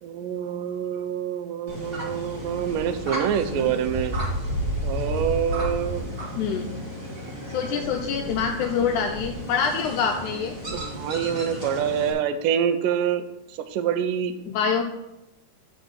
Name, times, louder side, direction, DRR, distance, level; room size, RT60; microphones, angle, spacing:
voice 1, 0.0-4.1 4.8-6.0 10.7-13.3 13.5-14.3, right 8 dB, 85° right, 10 dB, 2.3 m, -26 dB
sound 1, 1.7-12.1, equal, 40° right, 0.8 m, -32 dB
voice 2, 7.5-10.5 14.5-14.8, left 6 dB, 80° left, 3 dB, 1.9 m, -25 dB
8.2 x 4.0 x 6.3 m, 0.91 s
omnidirectional pair, 3.8 m